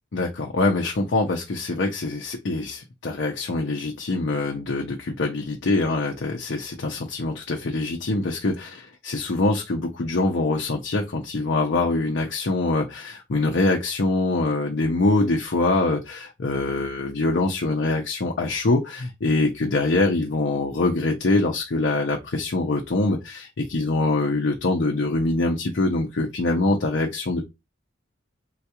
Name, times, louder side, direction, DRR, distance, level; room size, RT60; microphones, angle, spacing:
voice 1, 0.1-27.4, left 2 dB, 65° left, 0.6 m, -24 dB
3.8 x 2.3 x 2.8 m
head